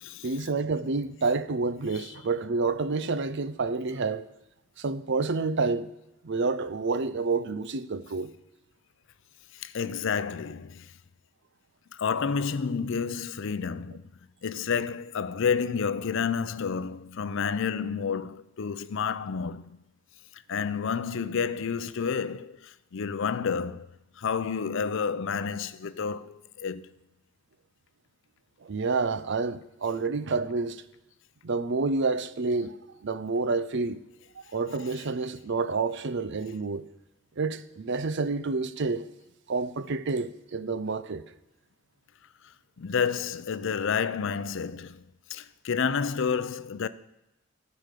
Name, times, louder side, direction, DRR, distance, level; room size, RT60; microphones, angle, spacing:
voice 1, 0.2-4.3 4.8-5.9 6.2-8.3 28.6-30.8 31.4-32.8 33.0-34.0 34.5-36.9 37.4-39.1 39.5-41.3, right 4 dB, 60° right, 0.6 m, -29 dB
voice 2, 9.5-10.9 11.9-14.0 14.4-19.8 20.3-26.9 42.8-45.0 45.3-46.9, left 6 dB, 65° left, 0.5 m, -30 dB
14.5 x 5.0 x 6.6 m
head